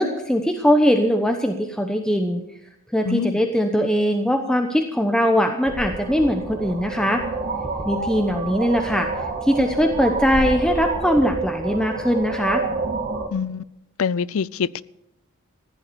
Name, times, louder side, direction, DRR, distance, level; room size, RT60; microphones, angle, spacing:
voice 1, 0.0-2.4 2.9-7.2 7.9-9.1 9.4-12.6, equal, 5° left, 1.0 m, -21 dB
voice 2, 3.1-3.4 13.3-13.6 14.0-14.8, left 6 dB, 70° left, 0.5 m, -24 dB
sound 1, 5.6-13.3, right 3 dB, 45° right, 2.7 m, -28 dB
15.5 x 11.0 x 7.0 m
head